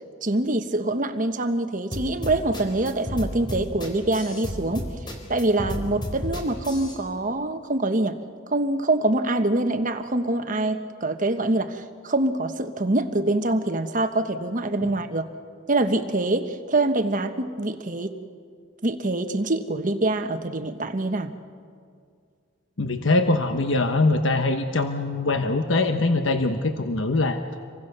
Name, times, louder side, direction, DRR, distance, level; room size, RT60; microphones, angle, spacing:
voice 1, 0.2-4.9 5.3-8.2 8.5-15.3 15.7-18.2 18.8-21.3, right 2 dB, 40° right, 8 dB, 1.3 m, -25 dB
sound 1, 1.9-7.0, equal, 25° left, 4.2 m, -32 dB
voice 2, 22.8-27.4, left 2 dB, 70° left, 7 dB, 1.1 m, -23 dB
28.0 x 23.5 x 6.8 m, 2.3 s
head